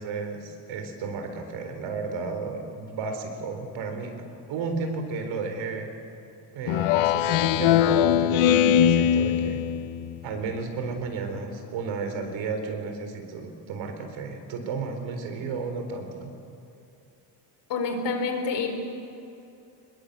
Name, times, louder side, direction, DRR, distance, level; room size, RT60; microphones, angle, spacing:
voice 1, 0.0-4.1 4.5-5.9 6.5-9.6 10.2-16.3, right 4 dB, 65° right, 5 dB, 4.2 m, -33 dB
Speech synthesizer, 6.7-10.2, left 10 dB, 80° left, 0.9 m, -21 dB
voice 2, 17.7-18.7, left 4 dB, 60° left, 5 dB, 4.2 m, -27 dB
26.5 x 21.0 x 8.2 m, 2.8 s
cardioid pair, 175°, 48 cm